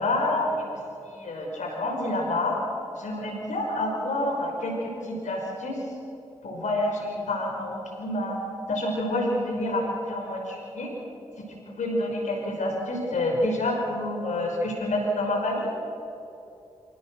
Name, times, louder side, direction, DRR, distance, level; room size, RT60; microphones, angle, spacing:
voice 1, 0.0-2.6 2.9-5.8 6.4-8.4 8.7-10.9 11.7-15.7, left 1 dB, 80° left, 0 dB, 5.6 m, -28 dB
26.0 x 17.5 x 6.3 m, 2.9 s
cardioid pair, 40°, 12 cm